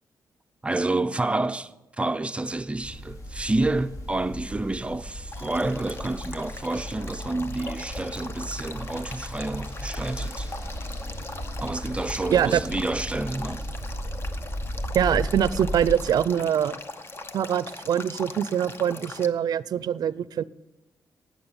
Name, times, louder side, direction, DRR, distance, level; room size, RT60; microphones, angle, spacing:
voice 1, 0.6-10.5 11.6-13.7, right 2 dB, 15° right, 0.5 m, -29 dB
sound 1, 2.8-16.0, equal, 50° left, 2.4 m, -35 dB
Male speech man speaking / Stream / Trickle dribble, 5.3-19.3, left 2 dB, 35° left, 1.0 m, -41 dB
voice 2, 14.9-16.8 17.3-20.4, right 9 dB, 70° right, 0.5 m, -23 dB
18.5 x 7.5 x 7.1 m
wide cardioid pair, 125°, 7 cm